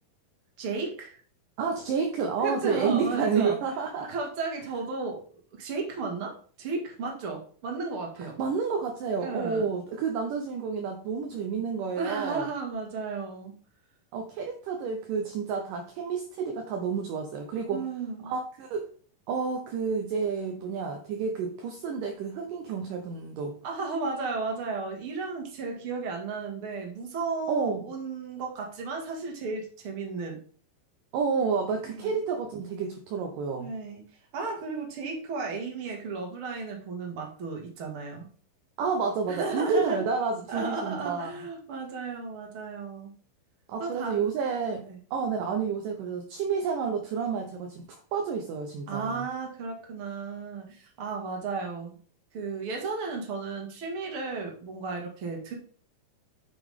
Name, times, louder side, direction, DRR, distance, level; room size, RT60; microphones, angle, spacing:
voice 1, 0.6-1.2 2.4-3.6 4.1-5.2 5.5-8.4 9.2-9.7 12.0-13.5 17.7-18.3 23.6-30.4 31.9-32.1 33.6-34.0 34.3-38.3 39.3-40.0 40.5-43.1 43.8-44.2 44.9-45.0 48.9-51.9 52.3-55.5, right 4 dB, 40° right, 1 dB, 2.5 m, -34 dB
voice 2, 1.6-4.1 8.4-12.4 14.1-17.8 18.3-18.9 19.3-23.6 27.5-27.8 31.1-33.7 38.8-41.3 43.7-49.3, right 5 dB, 70° right, 4 dB, 2.3 m, -30 dB
9.2 x 6.2 x 3.6 m, 0.43 s
omnidirectional pair, 4.4 m